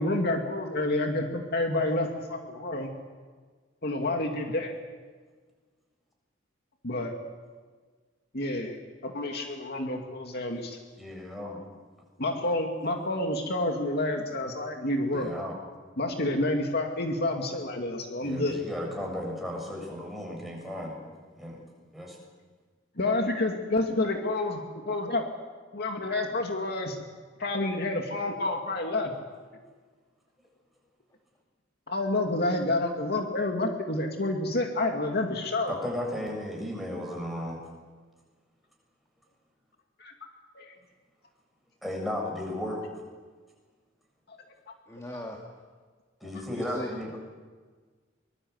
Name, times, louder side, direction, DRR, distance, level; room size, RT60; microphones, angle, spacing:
voice 1, 0.0-2.9 3.8-4.7 6.8-7.1 8.3-8.8 9.0-10.8 12.2-15.3 16.0-18.6 23.0-24.6 24.9-25.2 25.7-27.0 27.4-29.1 31.9-35.7 40.0-40.1 40.6-40.7 44.3-44.4 45.1-45.2, left 2 dB, 55° left, 3 dB, 2.5 m, -29 dB
voice 2, 11.0-11.6 15.1-15.5 18.2-21.0 21.4-21.6 21.9-22.2 35.7-37.6 41.8-42.8 46.2-47.1, left 1 dB, ahead, -1 dB, 7.4 m, -35 dB
voice 3, 44.9-45.4 46.5-47.2, left 1 dB, 15° left, 0 dB, 2.6 m, -39 dB
24.5 x 22.0 x 8.1 m, 1.5 s
head